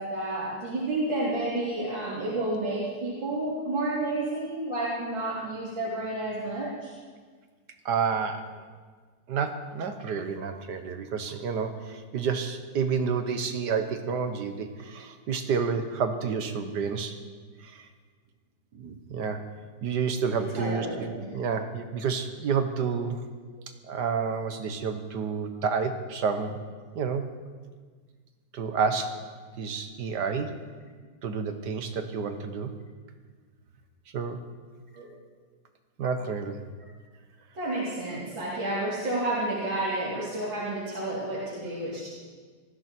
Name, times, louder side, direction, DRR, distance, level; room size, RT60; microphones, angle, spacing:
voice 1, 0.0-6.9 20.6-21.3 34.9-35.1 37.5-42.1, right 2 dB, 80° right, -8 dB, 4.2 m, -30 dB
voice 2, 7.9-8.4 9.3-17.2 17.6-17.9 18.7-19.4 19.8-21.1 21.3-23.2 23.9-26.6 27.0-27.3 28.5-29.1 29.6-30.5 31.2-32.7 34.1-34.4 36.0-36.6, right 6 dB, 65° right, 7 dB, 1.7 m, -29 dB
19.5 x 14.5 x 4.6 m, 1.5 s
omnidirectional pair, 2.0 m